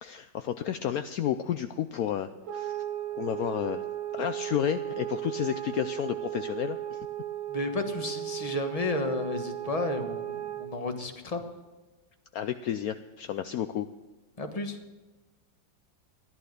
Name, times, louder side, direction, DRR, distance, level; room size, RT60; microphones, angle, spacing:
voice 1, 0.0-2.8 3.2-3.8 4.1-7.0 12.3-13.9, left 10 dB, 75° left, 10 dB, 0.8 m, -31 dB
sound 1, 2.4-10.8, right 12 dB, 80° right, 1.7 m, -36 dB
voice 2, 7.5-11.4 14.4-14.8, left 2 dB, 20° left, 6 dB, 1.2 m, -32 dB
14.5 x 11.0 x 6.6 m, 1.2 s
omnidirectional pair, 2.1 m